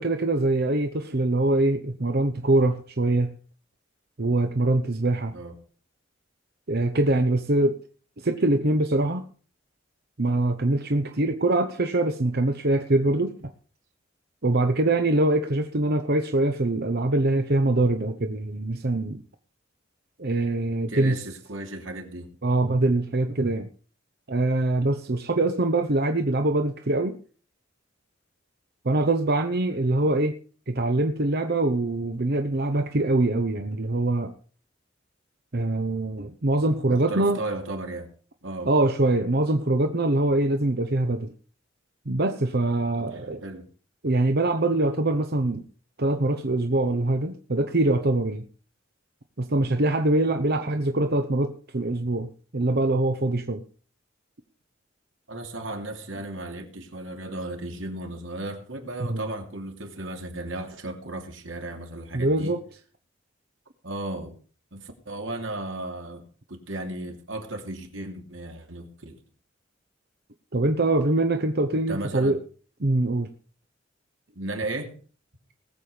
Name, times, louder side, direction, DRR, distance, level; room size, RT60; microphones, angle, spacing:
voice 1, 0.0-3.3 4.2-5.3 6.7-7.8 8.2-9.2 10.2-13.5 14.4-19.2 20.2-21.2 22.4-23.7 24.3-27.2 28.8-30.4 30.7-34.3 35.5-37.4 38.7-41.3 42.1-43.4 44.0-45.7 46.0-48.5 49.4-53.6 59.0-59.3 62.1-62.6 70.5-72.4 72.8-73.3, right 2 dB, 55° right, 1.0 m, -23 dB
voice 2, 20.9-22.3 36.9-38.1 38.4-38.7 42.9-43.7 55.3-62.5 63.8-64.3 64.7-66.2 66.5-69.2 71.9-72.4 74.3-74.9, right 2 dB, 80° right, 2.9 m, -35 dB
19.5 x 7.6 x 5.1 m
head